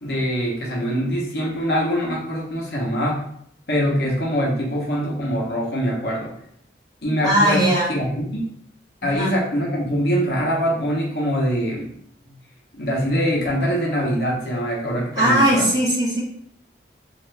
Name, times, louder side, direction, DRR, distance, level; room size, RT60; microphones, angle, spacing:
voice 1, 0.0-3.2 3.7-6.3 7.0-8.5 9.0-11.9 12.7-15.7, equal, 60° left, -3 dB, 0.9 m, -23 dB
voice 2, 7.2-7.9 9.0-9.3 12.3-12.4 15.1-16.2, right 1 dB, 20° right, -6 dB, 1.0 m, -19 dB
3.1 x 2.5 x 3.2 m, 0.68 s
head